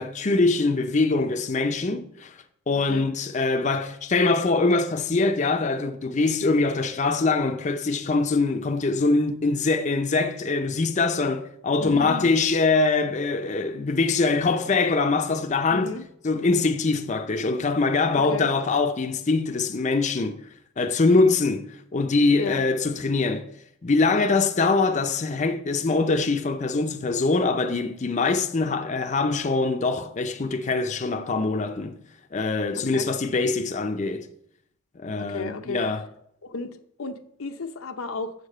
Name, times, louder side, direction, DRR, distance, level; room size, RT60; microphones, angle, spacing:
voice 1, 0.0-2.4 2.7-16.0 16.2-20.4 20.8-23.5 23.8-32.0 32.3-34.3 35.0-36.1, left 3 dB, 35° left, 0.6 m, -23 dB
voice 2, 11.8-12.3 15.7-16.1 18.3-18.5 22.4-22.6 32.7-33.1 35.2-35.8 36.4-38.3, left 3 dB, 80° left, 0.8 m, -33 dB
8.2 x 6.7 x 5.3 m
head